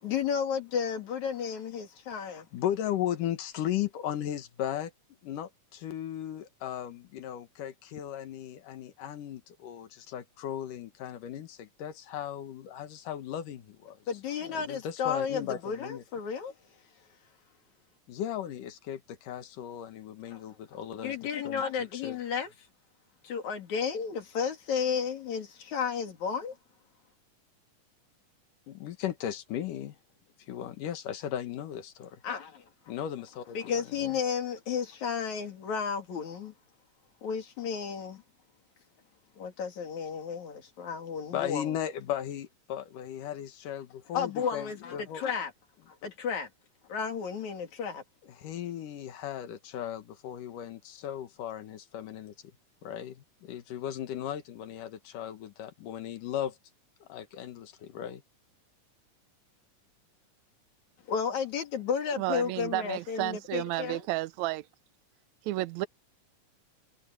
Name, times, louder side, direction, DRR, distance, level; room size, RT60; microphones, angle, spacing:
voice 1, 0.0-2.5 14.1-16.5 20.3-20.4 21.0-22.5 23.2-26.6 32.2-32.6 33.5-36.5 37.2-38.2 39.4-41.7 44.1-45.5 45.9-46.5 46.9-48.0 61.1-64.1, left 6 dB, 60° left, 3.9 m, -33 dB
voice 2, 2.1-4.9 5.2-14.0 14.5-16.0 18.1-22.2 28.7-30.0 30.4-32.2 32.9-33.7 34.0-34.2 41.3-45.2 46.0-46.1 48.3-52.3 52.8-56.6 57.0-58.2, left 10 dB, 80° left, 3.1 m, -36 dB
voice 3, 62.2-64.6 65.4-65.9, right 17 dB, 80° right, 1.7 m, -32 dB
omnidirectional pair, 3.8 m